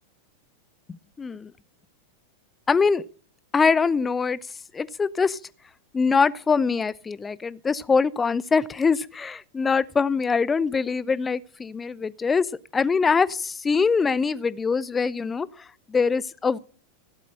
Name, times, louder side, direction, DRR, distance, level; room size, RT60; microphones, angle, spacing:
voice 1, 1.2-1.5 2.7-3.1 3.5-4.4 4.7-5.4 5.9-16.6, left 5 dB, 15° left, 0.7 m, -23 dB
16.0 x 8.4 x 9.0 m
figure-of-eight pair, 90°, 0 cm